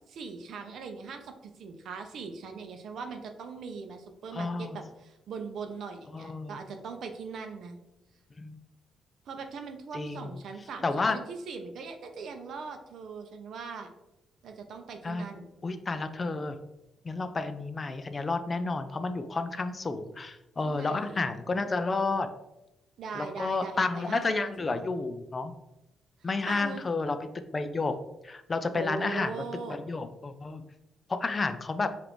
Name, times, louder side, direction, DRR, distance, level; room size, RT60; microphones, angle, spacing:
voice 1, 0.1-7.8 9.3-13.9 14.4-15.5 20.6-21.2 23.0-24.2 24.6-24.8 26.5-26.8 28.7-29.8, right 5 dB, 70° right, 6 dB, 0.5 m, -40 dB
voice 2, 4.3-4.8 6.1-6.6 8.4-8.6 9.9-10.4 10.8-11.2 15.0-15.3 15.6-16.6 17.0-22.3 23.1-25.5 26.2-27.2 27.5-27.9 28.2-29.3 29.7-30.6 31.1-31.9, left 3 dB, 30° left, 9 dB, 0.3 m, -31 dB
5.0 x 2.5 x 3.0 m, 0.93 s
cardioid pair, 115°, 0 cm